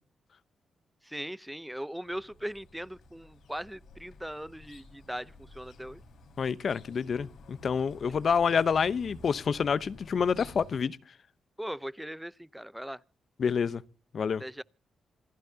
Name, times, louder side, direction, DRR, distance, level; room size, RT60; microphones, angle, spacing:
voice 1, 1.0-6.0 11.6-13.0 14.4-14.6, equal, 5° right, 0.7 m, -39 dB
sound 1, 2.0-10.8, left 2 dB, 75° left, 4.3 m, -52 dB
voice 2, 6.4-11.0 13.4-13.8 14.1-14.4, left 6 dB, 60° left, 0.9 m, -28 dB
27.5 x 15.0 x 2.8 m
supercardioid pair, 45°, 0 cm